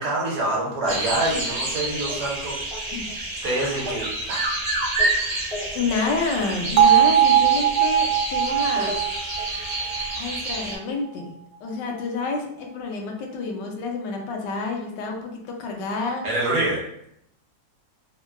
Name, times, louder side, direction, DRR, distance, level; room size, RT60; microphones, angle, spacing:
voice 1, 0.0-2.6 3.4-4.4 16.2-16.8, right 2 dB, 65° right, -4 dB, 1.3 m, -26 dB
sound 1, 0.9-10.8, right 2 dB, 5° left, 0.5 m, -28 dB
voice 2, 5.7-8.9 10.2-11.3 11.6-16.2, left 4 dB, 80° left, 2 dB, 1.2 m, -29 dB
Bell, 6.8-10.8, right 10 dB, 85° right, 1.3 m, -20 dB
3.5 x 2.2 x 2.2 m, 0.73 s
omnidirectional pair, 1.9 m